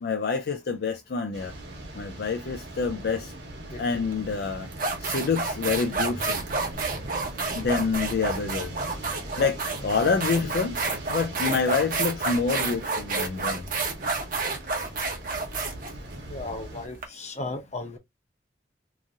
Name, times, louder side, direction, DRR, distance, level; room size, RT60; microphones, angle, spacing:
voice 1, 0.0-1.5 2.0-3.3 3.8-4.7 5.0-6.4 7.5-8.7 9.4-10.8 11.1-13.7, left 5 dB, 60° left, 0.4 m, -27 dB
sound 1, 1.3-16.9, right 1 dB, 70° right, 1.1 m, -40 dB
sound 2, 4.1-4.3 4.7-17.0, right 3 dB, 50° right, 0.8 m, -29 dB
voice 2, 16.3-18.0, left 2 dB, 40° left, 0.8 m, -35 dB
2.9 x 2.6 x 2.5 m
head